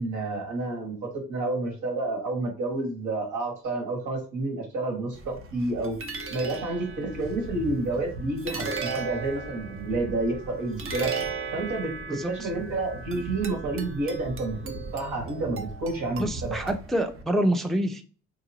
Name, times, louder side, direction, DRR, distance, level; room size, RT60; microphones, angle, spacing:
voice 1, 0.0-6.0 6.3-11.1 11.5-11.9 12.3-16.7, right 2 dB, 75° right, 1.7 m, -30 dB
sound 1, 5.1-17.2, right 4 dB, 45° right, 0.7 m, -36 dB
voice 2, 12.1-12.5 16.2-18.0, right 1 dB, ahead, 0.4 m, -27 dB
3.8 x 2.9 x 2.8 m
cardioid pair, 90°, 30 cm